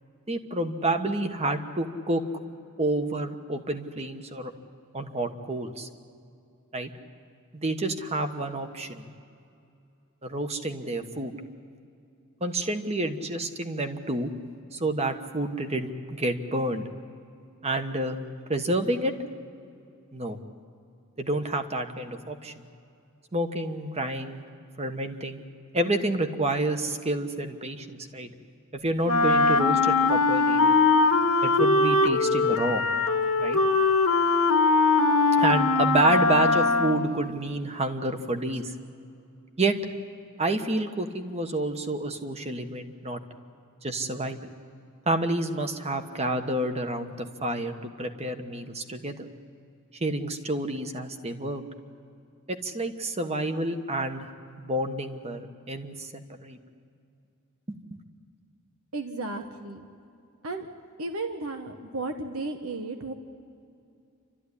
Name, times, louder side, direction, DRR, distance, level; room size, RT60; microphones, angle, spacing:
voice 1, 0.3-2.2 2.8-4.5 4.9-5.9 6.7-6.9 7.5-9.0 10.2-11.3 12.4-14.3 14.7-16.8 17.6-18.2 18.5-19.1 20.1-20.4 21.2-22.5 23.3-24.4 24.8-25.4 25.7-28.3 28.8-30.7 31.4-32.8 33.4-33.6 35.4-38.7 39.6-39.8 40.4-43.2 43.8-44.5 45.1-49.3 49.9-51.7 52.5-54.3 54.6-56.6, right 1 dB, 30° right, 7 dB, 1.3 m, -29 dB
Wind instrument woodwind instrument, 29.0-37.2, left 3 dB, 85° left, 1.6 m, -21 dB
voice 2, 58.9-59.9 60.4-60.7 61.0-63.1, right 2 dB, 80° right, 6 dB, 1.3 m, -34 dB
29.0 x 13.5 x 9.9 m, 2.5 s
head